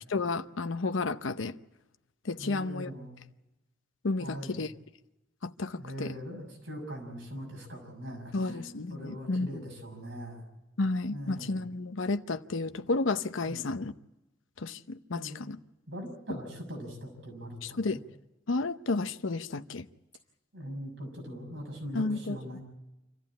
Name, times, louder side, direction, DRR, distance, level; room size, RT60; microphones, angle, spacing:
voice 1, 0.1-1.5 2.2-2.9 4.0-4.7 5.4-6.1 8.3-9.6 10.8-13.9 14.6-15.6 17.6-18.0 18.5-19.9 21.9-22.6, left 3 dB, 85° left, 0.8 m, -32 dB
voice 2, 2.4-3.2 4.2-4.7 5.8-10.4 11.1-11.6 13.4-13.6 15.1-15.4 15.9-17.8 20.5-22.6, equal, 75° right, 6.5 m, -41 dB
26.5 x 14.5 x 8.6 m
head